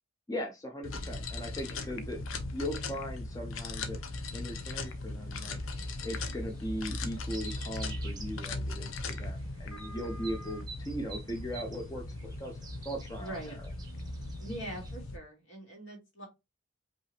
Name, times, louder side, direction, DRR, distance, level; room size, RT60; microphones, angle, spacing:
voice 1, 0.3-2.2 2.5-4.0 4.3-5.6 6.0-12.6 12.8-13.5, equal, 15° left, 1 dB, 0.7 m, -39 dB
sound 1, 0.8-15.2, left 2 dB, 80° left, 0.7 m, -38 dB
voice 2, 1.6-2.2 13.2-13.6 14.4-16.3, right 1 dB, 65° left, 0 dB, 2.3 m, -43 dB
sound 2, 4.7-15.0, right 4 dB, 20° right, 0.8 m, -52 dB
5.3 x 2.8 x 3.3 m, 0.23 s
head